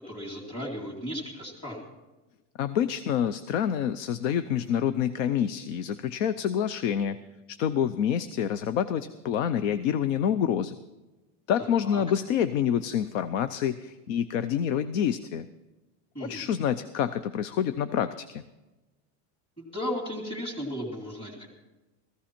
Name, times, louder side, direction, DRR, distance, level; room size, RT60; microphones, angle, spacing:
voice 1, 0.0-1.8 11.6-12.0 16.1-16.4 19.6-21.5, equal, 15° left, -2 dB, 2.3 m, -35 dB
voice 2, 2.6-7.2 7.5-10.8 11.5-15.5 16.2-18.4, left 9 dB, 80° left, 13 dB, 0.8 m, -27 dB
15.5 x 15.0 x 4.4 m, 1.1 s
supercardioid pair, 180°, 37 cm